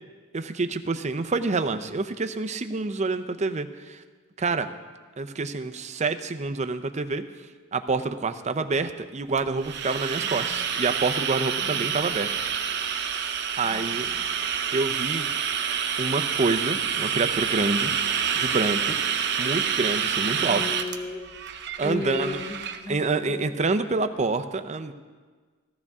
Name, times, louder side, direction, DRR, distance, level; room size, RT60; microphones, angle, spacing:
voice 1, 0.3-4.0 4.4-4.7 5.2-7.2 7.7-12.3 13.6-14.1 14.7-15.3 16.0-19.0 19.4-20.6 21.8-22.4 22.9-24.9, right 3 dB, 35° right, 9 dB, 0.6 m, -27 dB
sound 1, 9.4-22.8, right 7 dB, 55° right, 0.8 m, -28 dB
voice 2, 11.6-12.0 13.6-14.3 20.3-21.2 21.8-23.5, left 2 dB, 40° left, -1 dB, 1.2 m, -36 dB
14.5 x 14.5 x 3.6 m, 1.4 s
head